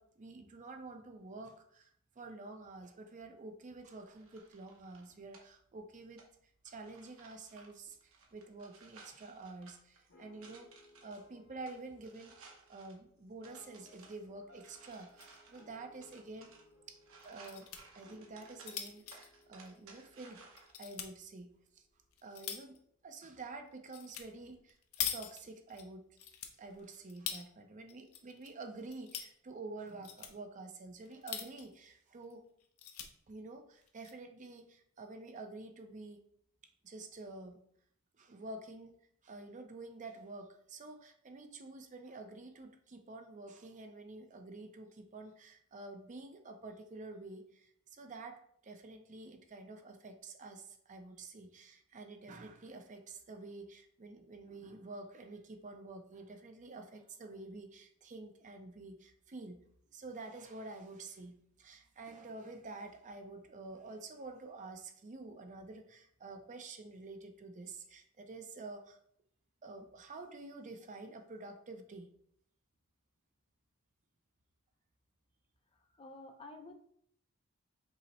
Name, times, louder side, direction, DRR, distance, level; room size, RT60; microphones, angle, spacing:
voice 1, 0.0-6.3 6.6-15.2 15.5-16.5 16.9-17.0 17.2-20.4 20.8-21.9 22.2-26.1 26.6-32.5 33.3-36.2 36.8-37.6 38.2-38.9 39.2-59.6 59.9-69.0 69.6-72.1, right 3 dB, 35° right, 6 dB, 0.5 m, -49 dB
sound 1, 3.7-20.7, right 4 dB, 70° right, 0.9 m, -60 dB
sound 2, 10.1-21.2, left 2 dB, 60° left, 0.9 m, -64 dB
sound 3, 14.9-15.4 15.7-15.8 16.1-16.2 17.2-17.8 18.3-20.1 20.6-21.1 21.7-22.8 23.9-24.3 24.5-25.8 26.2-27.5 27.9-28.5 28.8-29.3 29.9-30.3 31.0-31.8 32.2-32.3 32.6-33.1 33.8-34.1, left 8 dB, 80° left, 0.6 m, -43 dB
voice 2, 76.0-76.7, left 2 dB, 25° left, 5 dB, 0.4 m, -50 dB
5.4 x 2.0 x 4.1 m, 0.65 s
head